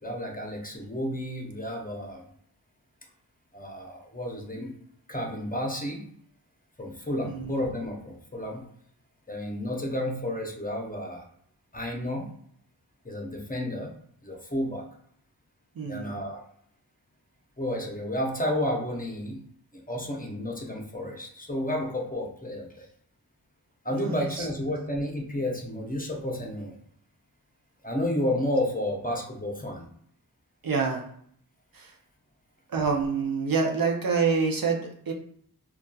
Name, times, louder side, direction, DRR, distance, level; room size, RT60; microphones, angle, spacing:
voice 1, 0.0-2.2 3.5-4.7 5.1-6.0 6.8-8.6 9.3-11.2 11.7-12.3 13.0-13.9 14.2-14.9 15.8-16.4 17.6-19.4 19.7-22.9 23.8-26.8 27.8-29.9, left 1 dB, 20° left, 1 dB, 0.6 m, -31 dB
voice 2, 7.2-7.6 15.8-16.1 23.9-24.5 30.6-31.0 31.7-31.9 32.7-35.1, right 5 dB, 60° right, 1 dB, 0.5 m, -27 dB
2.6 x 2.3 x 2.2 m, 0.63 s
wide cardioid pair, 40°, 39 cm